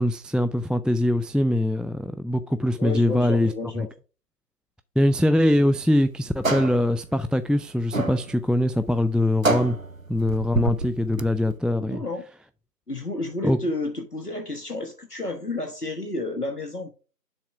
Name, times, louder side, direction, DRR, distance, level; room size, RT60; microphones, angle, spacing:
voice 1, 0.0-3.9 5.0-9.8 10.1-12.0 13.4-13.6, left 1 dB, ahead, 0.3 m, -22 dB
voice 2, 2.8-3.9 11.8-12.2 12.9-16.9, left 2 dB, 65° left, 1.4 m, -31 dB
sound 1, 5.4-11.6, right 2 dB, 55° right, 0.6 m, -29 dB
7.1 x 3.7 x 5.8 m
figure-of-eight pair, 175°, 49 cm